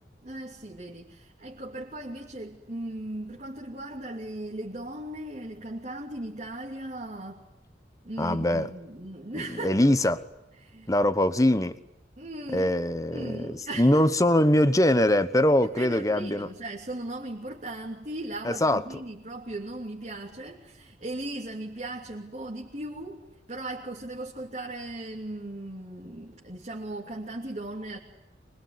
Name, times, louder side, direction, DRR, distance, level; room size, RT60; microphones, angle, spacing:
voice 1, 0.2-7.4 8.0-9.9 10.6-10.9 12.2-12.7 13.1-14.1 15.8-23.2 23.5-28.0, right 1 dB, 40° right, 2.9 m, -37 dB
voice 2, 8.2-8.7 9.3-10.2 10.9-11.8 12.5-16.5 18.4-18.8, left 1 dB, 20° left, 1.1 m, -22 dB
25.0 x 23.0 x 9.6 m
head